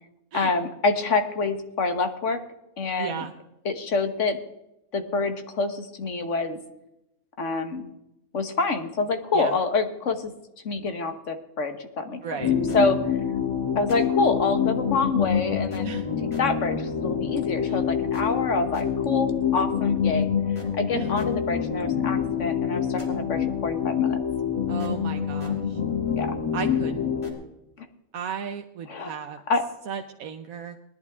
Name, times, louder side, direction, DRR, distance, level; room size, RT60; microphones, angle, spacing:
voice 1, 0.3-2.4 2.8-3.2 3.6-4.4 4.9-6.6 7.4-7.9 8.3-10.3 10.6-12.4 12.7-13.2 13.7-20.3 20.7-24.2 26.1-26.4 27.8-27.9 28.9-29.1 29.5-29.6, left 3 dB, 55° left, 8 dB, 1.6 m, -27 dB
voice 2, 3.0-3.3 9.3-9.6 12.2-12.5 15.8-16.1 17.7-17.8 20.9-21.1 24.7-25.8 26.5-27.1 28.1-29.4 29.9-30.8, right 7 dB, 75° right, 4 dB, 1.2 m, -35 dB
sound 1, 12.4-27.3, left 8 dB, 20° left, 2.6 m, -26 dB
19.5 x 11.0 x 3.6 m, 0.86 s
omnidirectional pair, 1.5 m